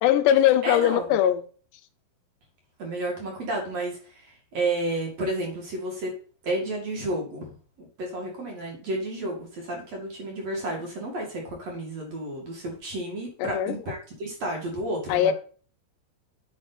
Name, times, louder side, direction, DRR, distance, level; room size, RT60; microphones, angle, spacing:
voice 1, 0.0-1.4 13.4-13.8 15.1-15.3, left 11 dB, 80° left, 2.6 m, -20 dB
voice 2, 0.6-1.1 2.8-6.1 6.4-15.3, right 1 dB, 45° right, 2.5 m, -31 dB
8.7 x 6.0 x 4.1 m
omnidirectional pair, 5.4 m